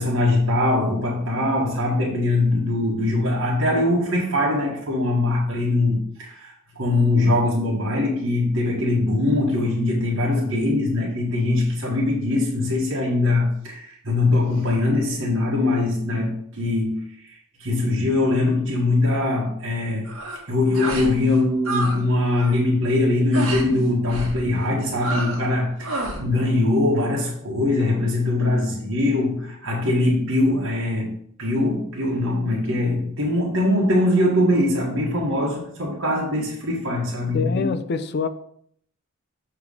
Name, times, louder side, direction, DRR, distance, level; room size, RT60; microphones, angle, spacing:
voice 1, 0.0-17.0 17.6-20.1 20.5-31.1 31.4-37.7, left 2 dB, 65° right, -4 dB, 1.4 m, -22 dB
sound 1, 20.0-20.4 20.7-21.1 21.4-22.0 22.3-22.6 23.3-23.7 24.1-24.4 25.0-25.5 25.8-26.2, right 2 dB, 85° right, 1.5 m, -29 dB
voice 2, 37.3-38.3, left 5 dB, 50° left, 10 dB, 0.4 m, -25 dB
6.9 x 3.3 x 4.8 m, 0.65 s
head